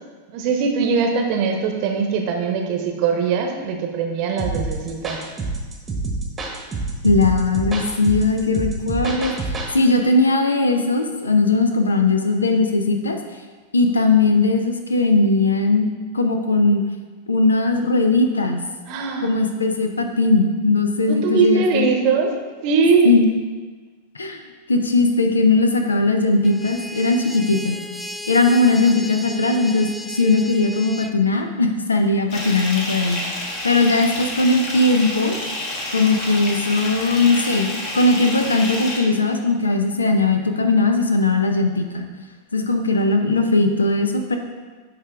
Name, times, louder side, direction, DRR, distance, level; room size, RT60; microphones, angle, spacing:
voice 1, 0.3-5.2 18.9-19.3 21.1-22.3 22.6-23.1, right 5 dB, 45° right, 3 dB, 0.9 m, -21 dB
sound 1, 4.4-9.7, right 3 dB, 20° right, 1.0 m, -27 dB
voice 2, 7.0-13.2 13.7-15.8 16.1-16.8 17.3-18.6 19.2-21.9 23.0-23.3 24.1-24.4 24.7-27.8 28.3-29.9 30.1-33.2 33.6-35.3 35.9-42.0 42.5-44.4, left 3 dB, 75° left, 5 dB, 0.6 m, -19 dB
sound 2, 26.4-31.1, left 1 dB, ahead, 0.3 m, -35 dB
Bathtub (filling or washing) / Fill (with liquid), 32.3-39.0, left 1 dB, 40° left, 1.4 m, -29 dB
10.0 x 3.4 x 3.5 m, 1.4 s
figure-of-eight pair, 90°, 0 cm